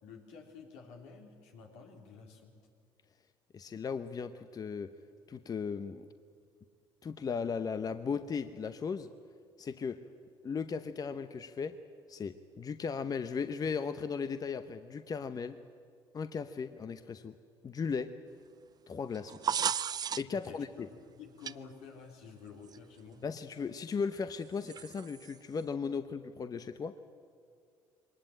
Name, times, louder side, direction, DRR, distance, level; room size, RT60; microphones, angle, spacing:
voice 1, 0.0-2.5 20.3-23.2, left 5 dB, 80° left, 2 dB, 3.6 m, -51 dB
voice 2, 3.5-4.9 5.3-6.1 7.0-9.1 9.6-10.0 10.4-11.8 12.1-15.6 16.1-17.3 17.6-18.1 18.9-19.4 20.2-20.9 23.2-27.0, left 5 dB, 35° left, 10 dB, 0.9 m, -36 dB
sound 1, 19.1-20.5 21.4-21.5 22.7-22.8 24.7-25.3, right 8 dB, 35° right, 0.5 m, -34 dB
22.0 x 19.0 x 8.9 m, 2.2 s
supercardioid pair, 75°, 11 cm